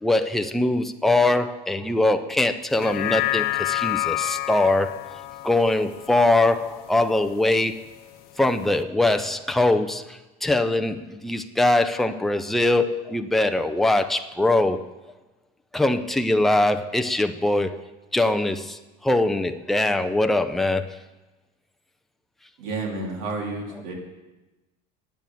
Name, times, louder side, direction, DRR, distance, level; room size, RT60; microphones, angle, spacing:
voice 1, 0.0-5.0 5.4-7.9 8.4-14.8 15.7-17.8 18.1-21.0, left 2 dB, ahead, 7 dB, 0.4 m, -22 dB
sound 1, 2.7-7.3 7.7-7.8, left 18 dB, 50° left, 0.7 m, -29 dB
voice 2, 22.6-23.9, right 3 dB, 70° right, -1 dB, 3.2 m, -30 dB
10.5 x 9.1 x 7.0 m, 1.1 s
cardioid pair, 150°, 20 cm